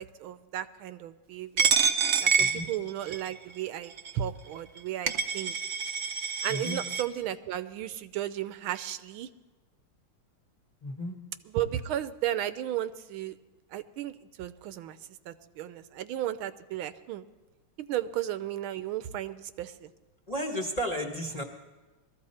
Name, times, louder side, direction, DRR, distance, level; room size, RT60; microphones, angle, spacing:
voice 1, 0.0-1.7 2.2-5.5 6.4-9.3 11.5-13.3 13.7-15.0 15.3-17.2 17.8-19.9, right 12 dB, 85° right, 12 dB, 1.6 m, -34 dB
Coin (dropping), 1.6-3.3 4.0-4.1 4.8-4.9 5.1-7.0, right 5 dB, 60° right, 0.6 m, -27 dB
voice 2, 6.5-6.8 10.8-11.2 20.3-21.4, equal, 25° left, 0 dB, 0.9 m, -33 dB
21.0 x 14.0 x 4.3 m, 1.2 s
omnidirectional pair, 2.2 m